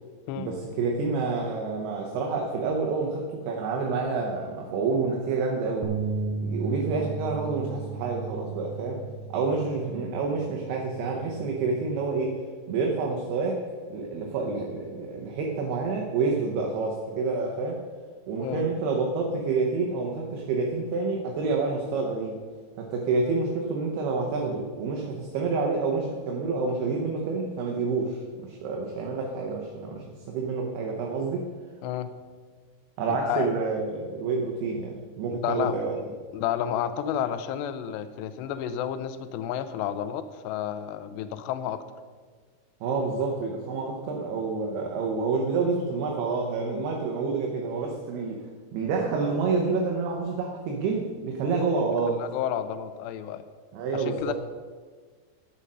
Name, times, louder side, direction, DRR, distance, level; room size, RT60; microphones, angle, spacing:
voice 1, 0.4-5.9 6.4-12.4 12.7-17.8 18.3-22.4 22.8-31.5 33.0-35.9 42.8-48.5 48.7-52.2 53.7-54.3, right 4 dB, 70° right, 0 dB, 2.7 m, -28 dB
sound 1, 5.8-12.1, right 4 dB, 90° right, 2.0 m, -35 dB
voice 2, 33.1-33.5 35.4-36.1 36.3-41.8 52.2-53.4 53.9-54.3, left 10 dB, 80° left, 11 dB, 2.6 m, -31 dB
11.5 x 7.6 x 5.5 m, 1.5 s
omnidirectional pair, 5.2 m